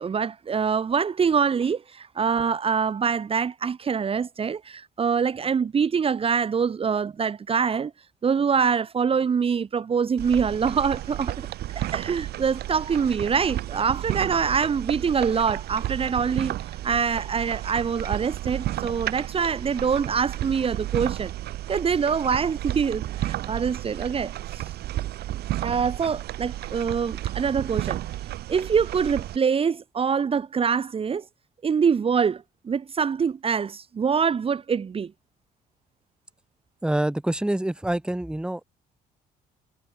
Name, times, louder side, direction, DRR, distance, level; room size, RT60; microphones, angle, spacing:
voice 1, 0.0-7.9 8.2-11.5 11.8-16.6 16.8-21.3 21.7-24.6 25.6-28.0 28.5-31.2 31.6-35.1, right 6 dB, 35° right, 1.9 m, -25 dB
sound 1, 10.2-29.4, right 14 dB, 70° right, 2.7 m, -32 dB
voice 2, 36.8-38.6, right 1 dB, 5° right, 2.3 m, -26 dB
cardioid pair, 110°, 17 cm